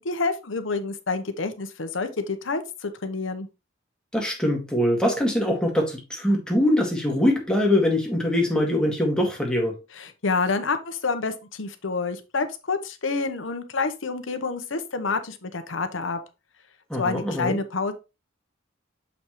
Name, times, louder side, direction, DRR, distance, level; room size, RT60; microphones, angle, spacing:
voice 1, 0.0-3.5 9.9-16.2 17.0-17.9, left 4 dB, 80° left, 1.0 m, -28 dB
voice 2, 4.1-9.7 16.9-17.6, left 1 dB, 5° left, 2.0 m, -23 dB
7.3 x 5.2 x 3.1 m
head